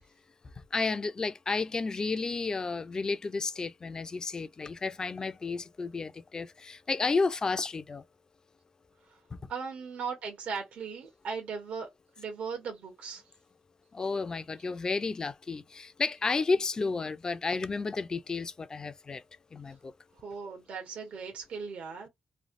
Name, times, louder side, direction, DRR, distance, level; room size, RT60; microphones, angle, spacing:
voice 1, 0.7-8.0 9.3-9.4 13.9-19.2 19.5-19.9, left 4 dB, 30° left, 0.4 m, -32 dB
voice 2, 9.5-11.9 12.2-13.2 20.2-22.1, right 5 dB, 70° right, 1.1 m, -38 dB
3.2 x 2.2 x 2.5 m
cardioid pair, 90°, 2 cm